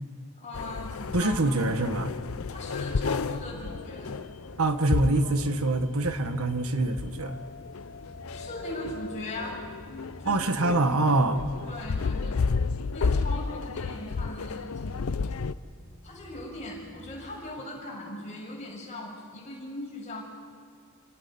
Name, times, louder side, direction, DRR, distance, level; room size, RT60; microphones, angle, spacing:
voice 1, 0.4-1.3 2.5-4.2 8.3-9.6 10.2-10.4 11.7-12.4 12.9-15.1 16.0-20.2, left 1 dB, 35° left, -3 dB, 6.8 m, -39 dB
sound 1, 0.5-15.5, left 4 dB, 80° left, 0.6 m, -32 dB
voice 2, 1.1-2.1 4.6-7.4 10.2-11.4, right 2 dB, 90° right, 8 dB, 1.3 m, -25 dB
sound 2, 1.4-17.0, right 1 dB, 65° right, 4.0 m, -50 dB
29.0 x 18.0 x 5.4 m, 2.1 s
head